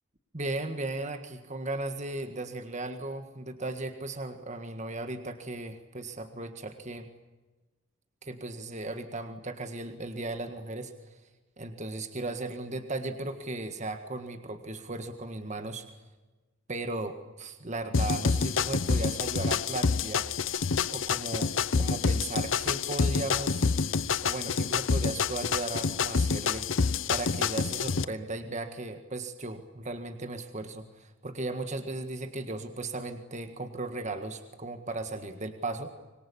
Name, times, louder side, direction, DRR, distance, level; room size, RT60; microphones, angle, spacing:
voice 1, 0.3-7.1 8.2-11.2 11.6-15.9 16.7-20.3 20.9-23.7 24.2-26.7 27.1-35.9, right 2 dB, 35° right, 7 dB, 1.7 m, -36 dB
sound 1, 17.9-28.0, left 5 dB, 75° left, 0.8 m, -27 dB
25.5 x 22.5 x 8.6 m, 1.2 s
head